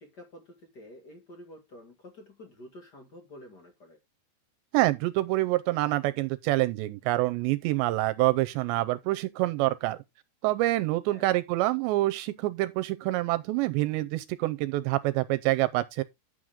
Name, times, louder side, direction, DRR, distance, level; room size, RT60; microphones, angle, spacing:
voice 1, 0.0-4.0 11.1-11.4, left 1 dB, 45° left, 1.2 m, -49 dB
voice 2, 4.7-10.0 10.4-16.0, right 18 dB, 80° right, 2.8 m, -26 dB
11.5 x 7.8 x 3.6 m
omnidirectional pair, 5.1 m